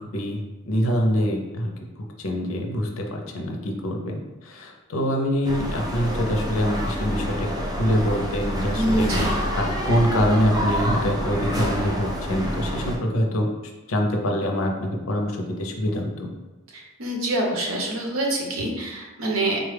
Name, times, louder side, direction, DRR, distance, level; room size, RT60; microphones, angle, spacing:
voice 1, 0.0-1.7 2.2-7.5 7.8-9.1 9.6-13.5 13.9-16.3, equal, 80° left, 2 dB, 0.6 m, -25 dB
sound 1, 5.4-13.0, equal, 20° right, 0.5 m, -27 dB
voice 2, 8.7-9.3 16.7-19.6, right 1 dB, 90° right, -1 dB, 0.8 m, -25 dB
3.7 x 2.3 x 3.3 m, 1.2 s
head